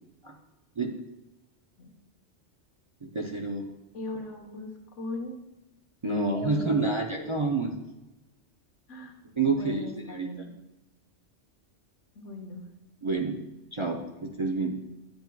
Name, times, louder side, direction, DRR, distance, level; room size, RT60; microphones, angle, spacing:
voice 1, 3.0-3.7 6.0-7.7 9.4-10.4 13.0-13.4 13.7-14.7, right 3 dB, 35° right, 2 dB, 0.5 m, -29 dB
voice 2, 3.9-5.4 6.1-6.9 7.2-7.4 8.9-9.2 9.6-10.5 12.1-12.6, left 2 dB, 80° left, 0 dB, 1.6 m, -38 dB
10.5 x 7.9 x 2.3 m, 1.0 s
omnidirectional pair, 1.2 m